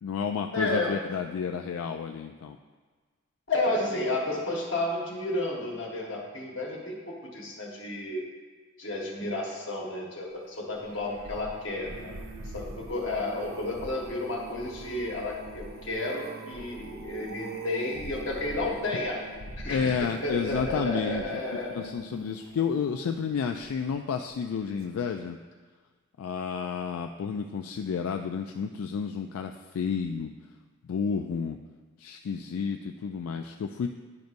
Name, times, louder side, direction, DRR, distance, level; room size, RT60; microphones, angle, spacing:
voice 1, 0.0-2.6 19.7-21.4 21.7-25.4 26.2-30.3 30.8-31.6 32.0-33.9, left 6 dB, 85° left, 5 dB, 0.3 m, -31 dB
voice 2, 0.5-1.0 3.5-8.3 8.8-12.2 12.5-19.2 19.6-21.9, left 2 dB, 65° left, -2 dB, 1.4 m, -32 dB
sound 1, 10.7-24.1 24.6-24.9 25.2-25.3, right 2 dB, 75° right, 0.6 m, -43 dB
10.5 x 5.1 x 2.6 m, 1.4 s
head